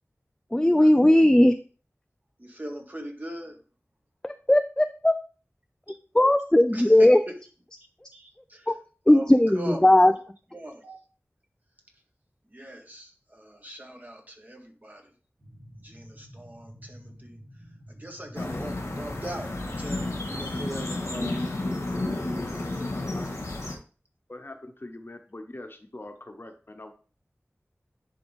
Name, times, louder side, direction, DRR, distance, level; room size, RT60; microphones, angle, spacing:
voice 1, 0.5-1.5 4.5-5.2 6.2-7.2 9.1-10.1, left 1 dB, 15° left, 8 dB, 0.4 m, -17 dB
voice 2, 2.4-3.6 5.9-6.0 6.7-7.4 8.1-8.8 9.1-9.9 10.5-11.0 12.5-15.1 15.8-17.4 17.9-19.5 19.8-21.4 22.6-23.4, right 1 dB, 35° right, 2 dB, 1.6 m, -40 dB
sound 1, 15.4-20.8, equal, 65° right, 3.7 m, -48 dB
sound 2, 18.3-23.7, left 2 dB, 85° left, 1.6 m, -31 dB
voice 3, 22.6-23.3 24.3-26.9, left 2 dB, 45° left, 5 dB, 1.1 m, -43 dB
10.5 x 3.8 x 3.6 m, 0.38 s
wide cardioid pair, 50°, 5 cm